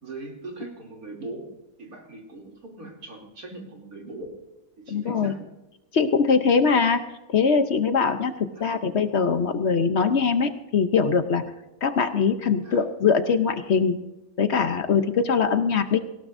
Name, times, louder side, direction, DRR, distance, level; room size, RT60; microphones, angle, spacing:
voice 1, 0.0-1.5 1.8-4.3 4.8-5.4 8.5-8.7 12.6-12.8, right 2 dB, 80° right, 0 dB, 3.4 m, -40 dB
voice 2, 4.9-5.3 5.9-7.0 7.3-11.4 11.8-14.0 14.4-16.0, left 5 dB, 55° left, 9 dB, 1.0 m, -22 dB
18.5 x 17.0 x 2.6 m, 0.98 s
omnidirectional pair, 1.5 m